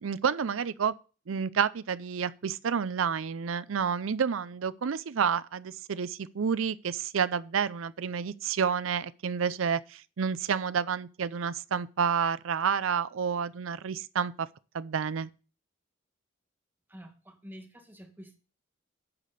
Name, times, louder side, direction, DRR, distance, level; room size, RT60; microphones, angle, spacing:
voice 1, 0.0-0.9 1.3-14.5 14.7-15.3, right 6 dB, 85° right, 0.5 m, -29 dB
voice 2, 16.9-18.4, equal, 10° right, 1.7 m, -48 dB
9.6 x 5.1 x 6.8 m
head